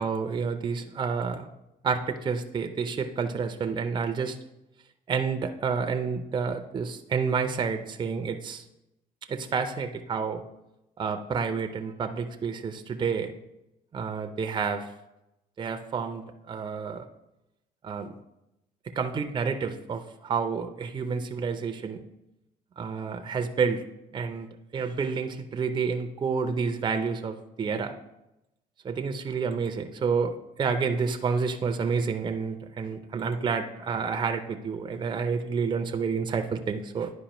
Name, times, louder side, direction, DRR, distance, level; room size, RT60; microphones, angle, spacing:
voice 1, 0.0-1.5 1.8-4.4 5.1-8.6 9.3-10.4 11.0-13.3 13.9-14.9 15.6-17.1 17.8-18.1 19.0-22.0 22.8-23.8 24.1-24.5 24.7-27.9 28.8-37.1, right 5 dB, 25° right, 6 dB, 0.4 m, -29 dB
10.0 x 4.7 x 3.0 m, 0.90 s
cardioid pair, 110°, 17 cm